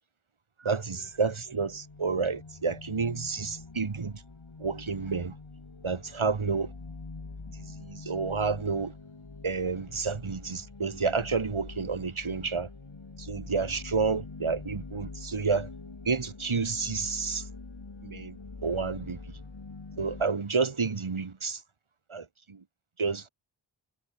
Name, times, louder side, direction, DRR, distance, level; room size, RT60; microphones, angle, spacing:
voice 1, 0.7-4.1 4.6-5.3 5.8-6.7 7.9-8.9 9.4-12.7 13.3-15.7 16.1-17.4 18.0-18.3 18.6-19.2 20.0-21.6 22.1-22.2 23.0-23.3, right 4 dB, 75° right, 2.1 m, -30 dB
sound 1, 0.9-20.3, left 3 dB, 65° left, 3.7 m, -45 dB
wide cardioid pair, 50°, 49 cm